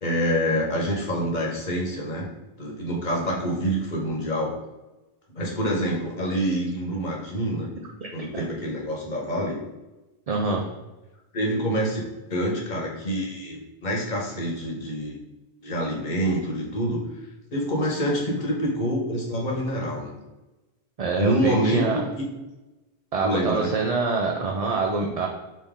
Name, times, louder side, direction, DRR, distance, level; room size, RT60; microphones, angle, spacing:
voice 1, 0.0-2.3 2.6-4.6 5.3-7.7 8.1-9.6 11.3-12.0 12.3-15.2 15.6-17.2 17.5-20.1 21.1-22.3 23.2-23.7, equal, 50° left, -2 dB, 1.1 m, -26 dB
voice 2, 10.3-10.6 21.0-22.0 23.1-25.3, right 4 dB, 50° right, 1 dB, 0.5 m, -25 dB
5.4 x 2.7 x 3.6 m, 1.1 s
omnidirectional pair, 1.1 m